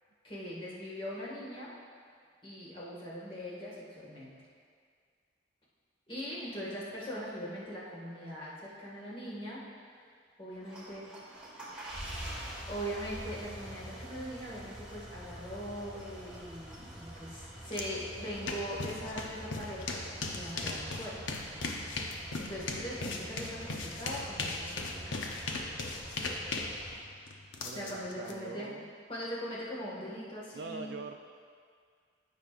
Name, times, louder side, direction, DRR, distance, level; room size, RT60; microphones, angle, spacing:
voice 1, 0.2-1.7 2.4-4.3 6.1-9.6 10.4-11.1 12.7-21.2 22.4-25.2 27.7-28.7 29.1-30.9, equal, 30° left, -7 dB, 1.9 m, -41 dB
sound 1, 10.5-27.0, right 1 dB, 5° right, 1.6 m, -46 dB
sound 2, 17.7-17.8 18.1-28.3, left 3 dB, 85° left, 0.8 m, -38 dB
voice 2, 27.6-28.9 30.5-31.2, right 4 dB, 60° right, 6 dB, 0.4 m, -43 dB
14.5 x 5.4 x 2.5 m, 2.1 s
head